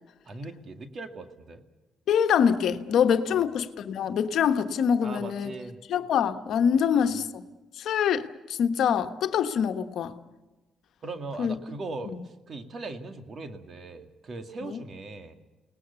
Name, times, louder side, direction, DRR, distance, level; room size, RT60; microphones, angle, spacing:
voice 1, 0.3-1.6 3.3-3.4 5.0-5.8 6.8-7.2 11.0-15.3, right 3 dB, 45° right, 2.2 m, -39 dB
voice 2, 2.1-5.5 5.9-7.4 7.8-10.2 11.4-11.6 12.1-12.2 14.6-14.8, left 8 dB, 70° left, 1.2 m, -25 dB
29.5 x 19.5 x 6.9 m
cardioid pair, 90°, 0 cm